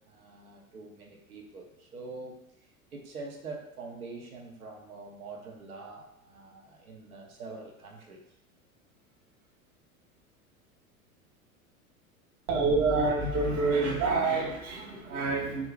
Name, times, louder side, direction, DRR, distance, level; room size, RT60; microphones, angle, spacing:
voice 1, 0.1-8.2, right 3 dB, 75° right, 0 dB, 0.6 m, -45 dB
voice 2, 12.5-15.7, right 3 dB, 20° right, -2 dB, 0.5 m, -27 dB
2.5 x 2.0 x 3.1 m, 0.79 s
figure-of-eight pair, 85°, 43 cm